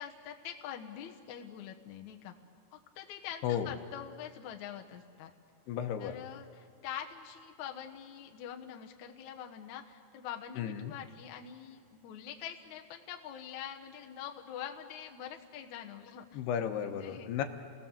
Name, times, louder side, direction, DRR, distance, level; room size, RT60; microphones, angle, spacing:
voice 1, 0.0-2.3 2.7-5.3 6.0-16.4 16.8-17.4, left 9 dB, 90° left, 3 dB, 1.6 m, -45 dB
voice 2, 5.7-6.2 10.6-10.9 16.3-17.4, left 9 dB, 75° left, 6 dB, 2.8 m, -34 dB
29.0 x 18.5 x 7.3 m, 2.1 s
omnidirectional pair, 5.3 m